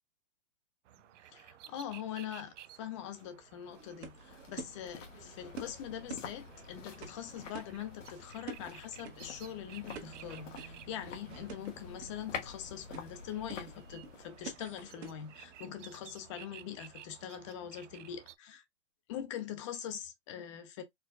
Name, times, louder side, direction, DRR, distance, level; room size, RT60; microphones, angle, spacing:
sound 1, 0.9-18.4, right 12 dB, 80° right, 0.5 m, -55 dB
voice 1, 1.3-18.6 19.1-20.8, left 10 dB, 25° left, 0.5 m, -43 dB
sound 2, 3.1-16.3 16.6-16.7, left 5 dB, 90° left, 1.2 m, -49 dB
sound 3, 3.7-15.6, right 5 dB, 60° right, 1.2 m, -50 dB
4.6 x 2.3 x 2.3 m
hypercardioid pair, 155°, 37 cm